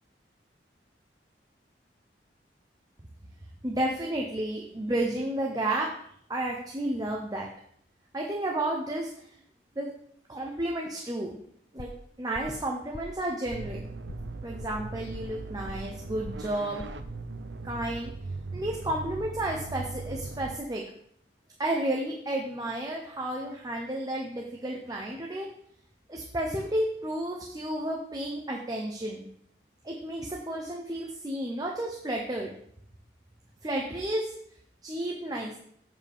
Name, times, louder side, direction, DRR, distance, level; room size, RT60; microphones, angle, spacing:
voice 1, 3.6-5.9 6.3-7.5 8.1-9.1 9.8-9.9 10.3-11.4 11.7-11.9 12.2-13.8 14.4-16.8 17.6-18.1 18.5-20.8 21.6-25.5 26.1-29.2 29.8-32.5 33.6-34.3 34.8-35.6, right 1 dB, 20° right, -1 dB, 0.8 m, -32 dB
sound 1, 11.8-12.1 12.3-12.6 12.9-13.2 13.5-13.8 14.1-14.3 14.6-15.4 15.7-16.0 16.2-16.5 16.8-17.1, left 2 dB, 40° left, 0.5 m, -43 dB
sound 2, 13.5-20.6, right 3 dB, 85° right, 0.6 m, -39 dB
7.8 x 6.8 x 3.5 m, 0.66 s
head